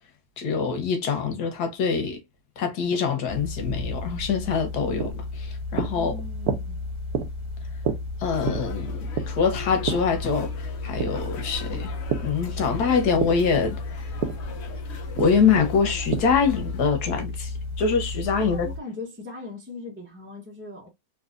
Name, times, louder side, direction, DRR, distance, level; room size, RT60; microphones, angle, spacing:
voice 1, 0.4-2.2 2.6-6.1 8.2-11.9 12.2-13.8 15.2-18.7, left 5 dB, 85° left, 1.5 m, -24 dB
sound 1, 3.3-18.8, left 3 dB, 25° left, 1.8 m, -33 dB
sound 2, 4.4-12.4 12.7-16.5, right 7 dB, 80° right, 1.2 m, -32 dB
voice 2, 5.9-6.8 18.4-20.9, left 3 dB, 10° right, 0.7 m, -39 dB
sound 3, 8.3-16.9, left 3 dB, 55° left, 0.9 m, -41 dB
4.0 x 2.7 x 2.4 m
omnidirectional pair, 1.6 m